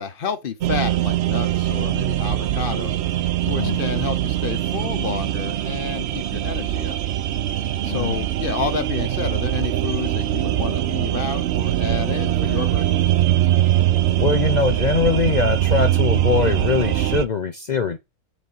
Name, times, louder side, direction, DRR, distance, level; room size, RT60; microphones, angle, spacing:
voice 1, 0.0-2.9 3.5-7.0 7.8-13.1, left 6 dB, 50° left, 0.8 m, -30 dB
sound 1, 0.6-17.2, right 13 dB, 65° right, 0.6 m, -22 dB
voice 2, 3.5-3.8 7.9-8.3 14.2-18.0, left 5 dB, 75° left, 0.4 m, -22 dB
5.0 x 4.0 x 5.4 m
omnidirectional pair, 1.6 m